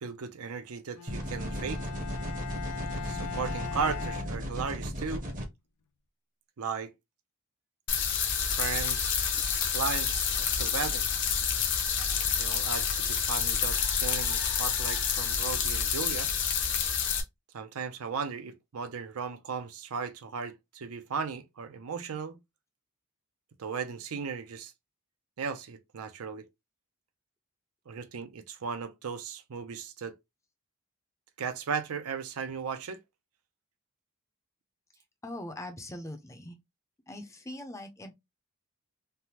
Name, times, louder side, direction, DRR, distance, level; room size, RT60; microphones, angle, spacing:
voice 1, 0.0-1.9 2.9-5.3 6.6-6.9 8.4-9.4 9.7-11.1 12.4-16.3 17.5-22.4 23.6-24.7 25.4-26.5 27.9-30.1 31.4-33.0, right 5 dB, 75° right, 0.5 m, -36 dB
Bowed string instrument, 0.9-5.1, left 7 dB, 90° left, 0.5 m, -41 dB
sound 1, 1.1-5.5, equal, 35° right, 0.7 m, -35 dB
sound 2, 7.9-17.2, left 7 dB, 55° left, 0.7 m, -28 dB
voice 2, 35.2-36.6 37.1-38.1, left 1 dB, 15° left, 0.5 m, -41 dB
3.3 x 2.1 x 2.8 m
head